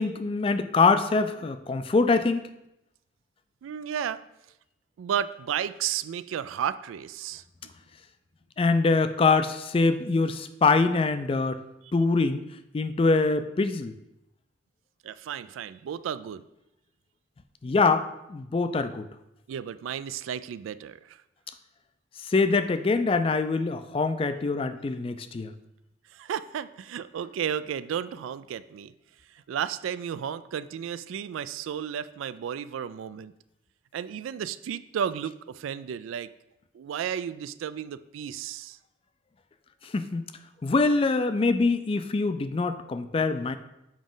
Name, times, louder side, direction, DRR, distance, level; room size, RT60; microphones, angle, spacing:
voice 1, 0.0-2.4 8.6-11.6 11.9-12.4 12.7-13.9 17.6-19.1 22.2-25.5 39.8-40.2 40.6-43.6, left 3 dB, 30° left, 11 dB, 0.3 m, -24 dB
voice 2, 3.6-4.2 5.0-7.4 15.0-16.4 19.5-21.2 26.1-28.9 29.3-33.3 33.9-36.3 36.7-38.8, right 8 dB, 90° right, 15 dB, 0.3 m, -33 dB
7.3 x 4.9 x 3.8 m, 0.88 s
head